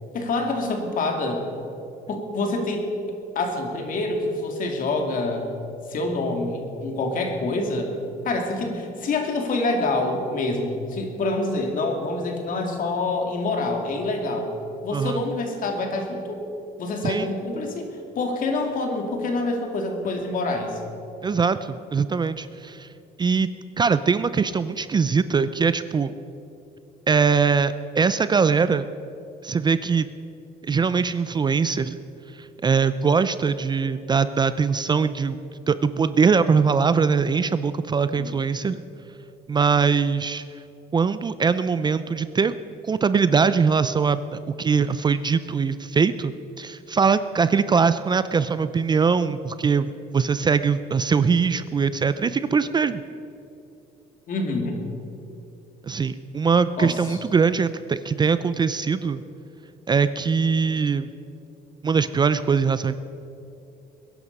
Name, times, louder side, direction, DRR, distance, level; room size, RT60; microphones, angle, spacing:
voice 1, 0.1-1.4 2.1-5.5 5.9-7.9 8.2-14.5 14.8-16.4 16.8-20.8 38.0-38.4 54.3-54.8 56.8-57.2, left 2 dB, 55° left, 3 dB, 2.7 m, -26 dB
voice 2, 21.2-22.9 23.2-23.5 23.8-26.1 27.1-28.9 29.4-30.1 30.6-32.0 32.4-35.4 35.7-38.8 39.5-40.4 40.9-42.5 42.9-53.0 55.8-59.2 59.9-61.1 61.8-63.0, right 5 dB, 25° right, 13 dB, 0.5 m, -22 dB
21.0 x 11.0 x 5.4 m, 2.8 s
cardioid pair, 110°, 17 cm